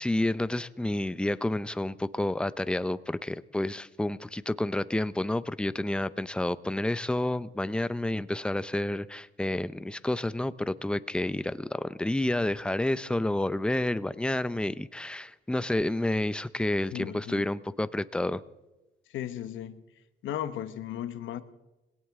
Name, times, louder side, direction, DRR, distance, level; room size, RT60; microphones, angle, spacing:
voice 1, 0.0-18.4, left 1 dB, 5° left, 0.6 m, -29 dB
voice 2, 16.9-17.5 19.1-19.8 20.2-21.4, left 11 dB, 80° left, 1.1 m, -36 dB
20.0 x 17.5 x 3.6 m
cardioid pair, 90°, 20 cm